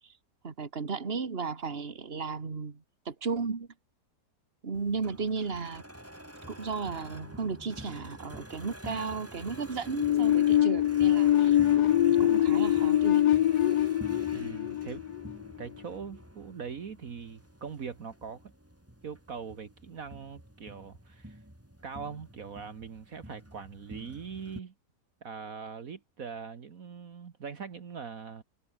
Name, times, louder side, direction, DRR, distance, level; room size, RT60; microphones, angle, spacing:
voice 1, 0.4-3.7 4.6-5.8 6.5-11.6 12.1-13.3, right 5 dB, 35° right, 2.1 m, -35 dB
sound 1, 4.7-24.6, equal, 10° right, 4.7 m, -48 dB
sound 2, 10.0-15.7, left 12 dB, 80° left, 1.4 m, -24 dB
voice 2, 14.3-15.0 15.6-18.5 19.0-21.4 21.8-24.7 25.2-28.4, right 6 dB, 60° right, 1.9 m, -42 dB
omnidirectional pair, 1.7 m